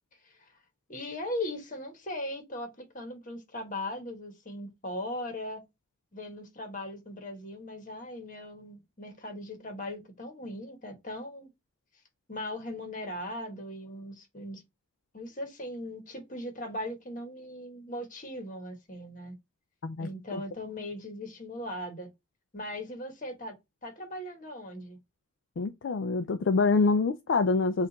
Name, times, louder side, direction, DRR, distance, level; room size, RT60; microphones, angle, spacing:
voice 1, 0.9-5.6 6.1-11.5 12.3-14.6 15.1-19.3 20.0-22.1 22.5-23.5 23.8-25.0, left 1 dB, 40° left, 1.2 m, -39 dB
voice 2, 19.8-20.4 25.6-27.9, left 4 dB, 60° left, 0.4 m, -26 dB
4.3 x 2.5 x 3.9 m
head